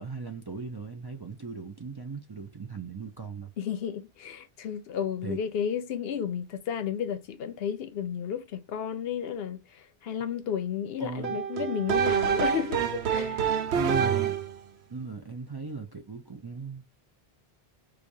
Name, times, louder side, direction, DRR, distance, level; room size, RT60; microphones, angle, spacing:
voice 1, 0.0-3.5 5.2-5.4 11.0-11.4 13.7-14.4 14.9-16.9, right 4 dB, 30° right, 0.4 m, -37 dB
voice 2, 3.6-13.5, left 8 dB, 75° left, 0.8 m, -32 dB
sound 1, 11.2-14.6, right 8 dB, 90° right, 0.9 m, -27 dB
4.8 x 2.5 x 2.6 m
omnidirectional pair, 1.1 m